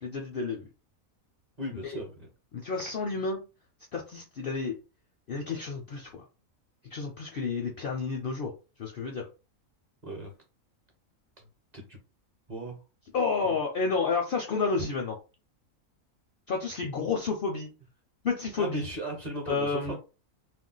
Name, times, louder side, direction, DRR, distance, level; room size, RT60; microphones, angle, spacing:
voice 1, 0.0-0.7 1.8-2.0 2.5-3.4 3.9-4.8 5.3-6.2 6.9-8.5 8.8-9.3 13.1-15.1 16.5-17.7 18.2-18.9 19.5-20.0, left 4 dB, 60° left, 1 dB, 0.6 m, -30 dB
voice 2, 1.6-2.3 10.0-10.3 11.7-12.0 12.5-12.8 13.4-13.6 14.8-14.9 18.6-20.0, right 1 dB, 35° right, 1 dB, 0.8 m, -37 dB
2.5 x 2.2 x 3.8 m, 0.31 s
omnidirectional pair, 1.4 m